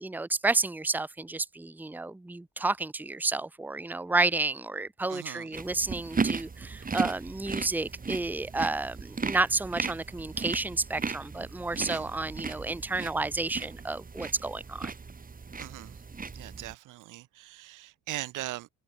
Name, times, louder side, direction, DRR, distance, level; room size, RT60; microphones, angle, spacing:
voice 1, 0.1-14.9, right 3 dB, 5° right, 0.8 m, -31 dB
voice 2, 5.1-5.6 11.8-12.1 15.6-16.0 16.3-18.7, right 17 dB, 90° right, 2.0 m, -40 dB
sound 1, 5.5-16.7, right 4 dB, 30° right, 2.3 m, -36 dB
open air
cardioid pair, 90°, 30 cm